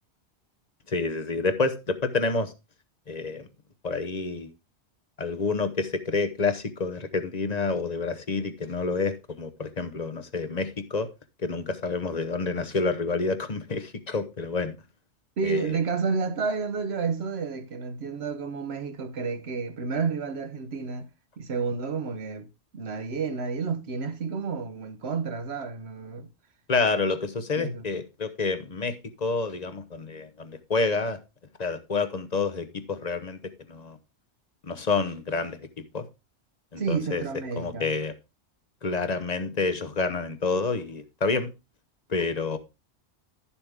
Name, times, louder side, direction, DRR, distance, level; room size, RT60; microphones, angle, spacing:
voice 1, 0.9-2.5 3.1-3.5 3.8-4.5 5.2-11.1 11.4-14.7 15.4-15.8 26.7-31.2 31.6-33.4 33.7-34.0 34.6-36.0 36.7-37.2 37.5-38.1 38.8-41.5 42.1-42.6, left 4 dB, 40° left, 0.9 m, -28 dB
voice 2, 15.4-21.1 21.4-22.5 22.7-26.3 27.6-27.9 36.8-37.9, right 5 dB, 65° right, 1.2 m, -30 dB
11.5 x 7.1 x 3.5 m
omnidirectional pair, 1.2 m